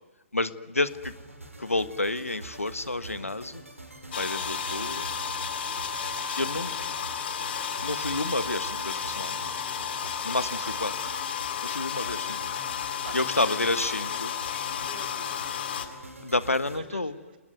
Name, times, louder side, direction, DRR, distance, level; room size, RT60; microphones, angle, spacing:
voice 1, 0.3-1.1 1.6-3.6 4.2-5.1 6.4-6.8 7.8-9.4 10.2-10.9 11.6-12.4 13.1-14.3 16.2-17.1, left 2 dB, 85° left, 13 dB, 1.5 m, -29 dB
sound 1, 0.8-16.8, right 2 dB, 80° right, 5.9 m, -46 dB
sound 2, 4.1-15.9, left 7 dB, 50° left, 2.7 m, -32 dB
voice 2, 11.9-12.5 12.9-14.4 14.8-16.1 16.7-17.4, right 6 dB, 45° right, 5 dB, 3.1 m, -48 dB
29.5 x 20.0 x 9.6 m, 1.2 s
figure-of-eight pair, 125°, 7 cm